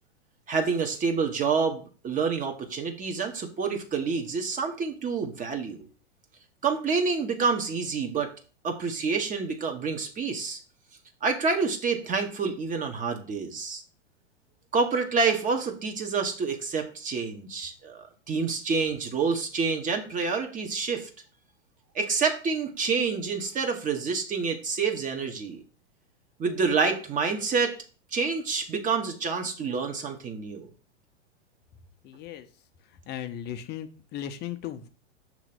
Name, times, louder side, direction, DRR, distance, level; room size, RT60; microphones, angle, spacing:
voice 1, 0.5-5.9 6.6-8.3 8.6-10.6 11.2-13.8 14.7-21.1 21.9-25.6 26.4-27.8 28.1-30.7, right 5 dB, 20° right, 4 dB, 1.1 m, -28 dB
voice 2, 32.0-32.5 33.0-34.9, left 10 dB, 30° left, 9 dB, 0.7 m, -36 dB
6.6 x 3.1 x 5.9 m, 0.38 s
hypercardioid pair, 110°, 35 cm